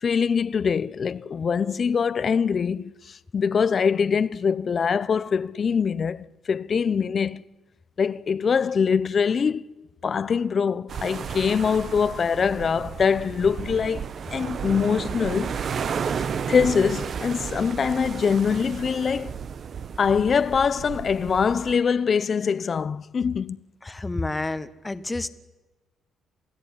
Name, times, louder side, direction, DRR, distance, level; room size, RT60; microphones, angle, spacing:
voice 1, 0.0-7.4 8.0-9.7 10.0-15.6 16.1-19.3 20.0-23.6, left 6 dB, 45° left, 0.8 m, -23 dB
sound 1, 10.9-21.7, right 7 dB, 55° right, 1.0 m, -33 dB
voice 2, 23.8-25.3, left 2 dB, 20° left, 1.4 m, -29 dB
28.0 x 16.5 x 9.9 m
cardioid pair, 90°, 0 cm